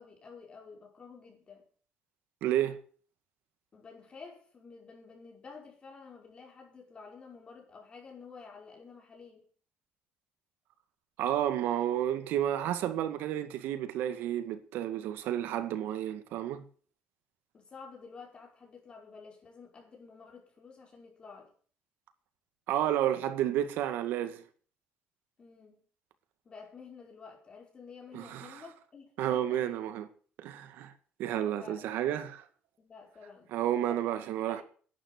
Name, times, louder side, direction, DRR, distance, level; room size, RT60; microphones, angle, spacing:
voice 1, 0.0-1.6 3.7-9.5 17.5-21.5 25.4-25.8 26.4-29.8 31.3-31.8 32.8-33.5 33.8-34.1 34.4-34.6, left 5 dB, 30° left, 5.3 m, -51 dB
voice 2, 2.4-2.8 11.2-16.6 22.7-24.4 28.1-28.6 29.2-30.1 30.4-30.9 31.2-32.4 33.5-34.6, right 11 dB, 75° right, 2.0 m, -31 dB
11.5 x 9.8 x 8.3 m
cardioid pair, 145°, 3 cm